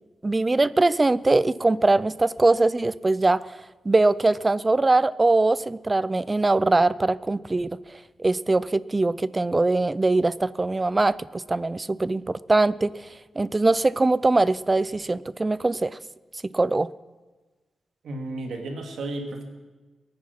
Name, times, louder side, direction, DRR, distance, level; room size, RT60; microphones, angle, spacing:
voice 1, 0.2-3.6 3.9-7.8 8.2-12.9 13.4-16.0 16.4-16.9, right 2 dB, 20° right, 19 dB, 0.4 m, -22 dB
voice 2, 18.0-19.4, right 2 dB, 75° right, 3 dB, 2.5 m, -33 dB
22.0 x 9.8 x 5.9 m, 1.3 s
wide cardioid pair, 110°, 0 cm